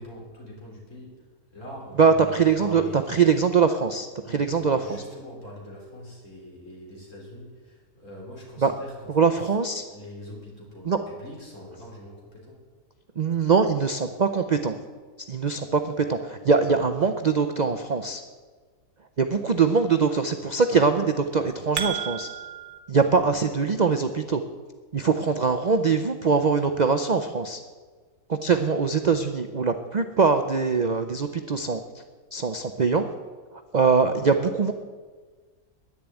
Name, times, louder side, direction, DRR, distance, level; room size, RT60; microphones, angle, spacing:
voice 1, 0.0-2.3 2.6-3.1 4.2-8.9 9.2-9.5 9.9-12.6, left 1 dB, 55° left, -3 dB, 4.4 m, -43 dB
voice 2, 2.0-5.0 8.6-8.7 9.1-9.8 10.8-11.0 13.2-14.8 15.3-18.2 19.2-22.3 22.9-24.4 24.9-27.6 28.3-32.0 32.3-33.1 33.5-34.7, right 5 dB, 45° right, 7 dB, 0.5 m, -22 dB
sound 1, 21.3-22.8, right 8 dB, 65° right, 1.7 m, -32 dB
10.5 x 10.0 x 9.0 m, 1.4 s
omnidirectional pair, 1.6 m